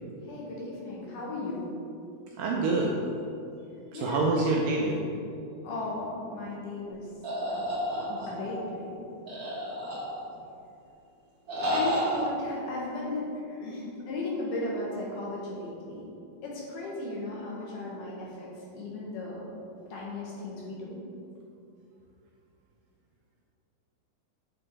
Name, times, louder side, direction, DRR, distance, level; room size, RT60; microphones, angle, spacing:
voice 1, 0.2-1.7 3.9-4.6 5.6-7.1 7.5-7.8 8.1-8.9 11.7-16.0 16.4-19.4 19.9-21.0, left 2 dB, 70° left, -4 dB, 2.3 m, -36 dB
voice 2, 2.4-3.0 3.9-5.1, right 3 dB, 80° right, -1 dB, 2.0 m, -26 dB
sound 1, 7.2-8.6 9.3-10.4 11.5-12.2, equal, 35° right, 1.4 m, -31 dB
8.8 x 6.0 x 3.3 m, 2.6 s
omnidirectional pair, 4.4 m